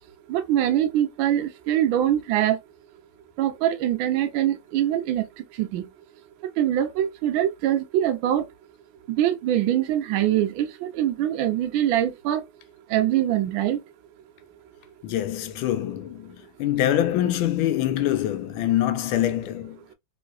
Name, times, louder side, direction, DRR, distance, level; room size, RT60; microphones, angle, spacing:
voice 1, 0.3-2.6 3.4-5.2 5.6-5.9 6.6-8.4 9.2-12.4 12.9-13.8, right 11 dB, 80° right, 1.4 m, -23 dB
voice 2, 15.0-19.8, left 12 dB, 90° left, 1.4 m, -25 dB
3.6 x 3.2 x 2.3 m
omnidirectional pair, 2.2 m